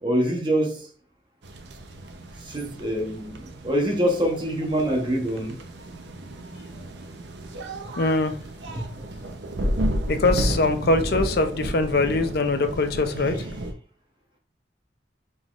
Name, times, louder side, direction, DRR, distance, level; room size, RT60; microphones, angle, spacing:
voice 1, 0.0-0.8 2.5-5.6 8.7-8.9 9.6-9.7, right 1 dB, 25° right, 0.9 m, -25 dB
sound 1, 1.4-13.7, right 1 dB, 75° right, 0.7 m, -32 dB
voice 2, 8.0-8.3 10.1-13.4, left 3 dB, 60° left, 0.5 m, -22 dB
5.4 x 3.8 x 2.4 m
head